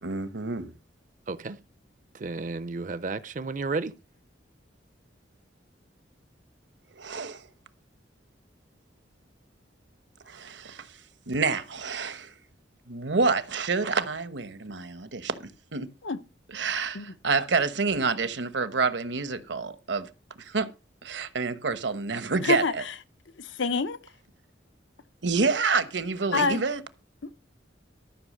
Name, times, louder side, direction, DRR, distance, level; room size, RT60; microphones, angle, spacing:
voice 1, 0.0-0.7 7.0-7.4 10.3-10.9 11.3-12.3 12.9-15.3 15.7-15.9 16.5-20.1 20.4-20.7 21.0-22.8 25.2-26.8, right 4 dB, 75° right, 1.1 m, -28 dB
voice 2, 1.3-1.6 2.1-3.9, right 3 dB, 45° right, 0.5 m, -32 dB
voice 3, 22.4-22.9 23.4-24.0 26.3-26.6, left 4 dB, 90° left, 0.8 m, -27 dB
13.0 x 5.7 x 6.5 m
head